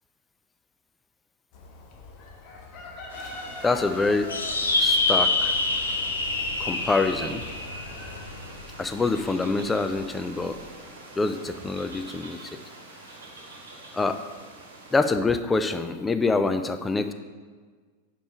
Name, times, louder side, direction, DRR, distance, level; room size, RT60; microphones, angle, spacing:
Chicken rooster, 1.5-8.2, left 3 dB, 45° left, 0.9 m, -43 dB
sound 1, 3.1-15.1, right 2 dB, 65° right, 1.1 m, -44 dB
voice 1, 3.6-4.3 4.8-5.6 6.6-7.4 8.8-10.6 11.2-12.4 13.9-14.2 14.9-17.1, left 3 dB, 10° left, 9 dB, 0.3 m, -25 dB
sound 2, 4.3-9.0, left 2 dB, 75° left, 0.6 m, -26 dB
5.3 x 4.6 x 4.9 m, 1.5 s
figure-of-eight pair, 90°, 0 cm